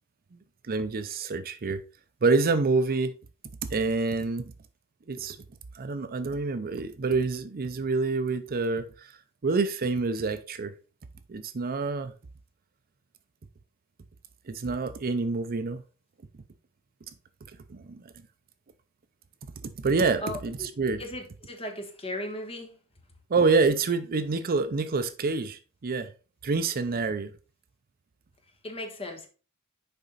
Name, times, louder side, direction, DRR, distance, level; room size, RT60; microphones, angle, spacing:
voice 1, 0.7-1.8 2.2-3.1 3.7-4.5 5.1-5.4 5.7-9.1 9.4-10.7 11.3-12.1 14.5-15.8 17.7-18.1 19.8-21.0 23.3-26.1 26.4-27.3, right 4 dB, 45° right, 0.5 m, -27 dB
voice 2, 20.2-20.7 21.0-22.8 28.6-29.3, left 1 dB, 25° left, 1.5 m, -36 dB
6.9 x 4.9 x 4.0 m
head